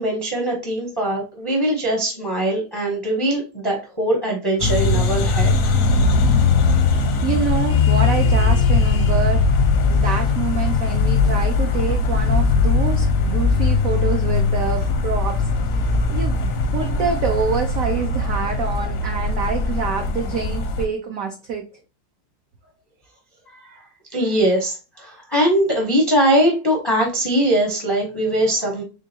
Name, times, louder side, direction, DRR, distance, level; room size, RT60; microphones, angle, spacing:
voice 1, 0.0-5.5 15.8-15.9 23.5-23.8 24.1-28.8, right 1 dB, 30° left, 0 dB, 0.4 m, -21 dB
sound 1, 4.6-20.8, left 4 dB, 70° left, 0.8 m, -19 dB
voice 2, 7.2-9.4 9.9-15.4 16.1-21.7, right 6 dB, 80° right, 4 dB, 0.7 m, -26 dB
3.8 x 3.5 x 2.7 m, 0.32 s
omnidirectional pair, 2.0 m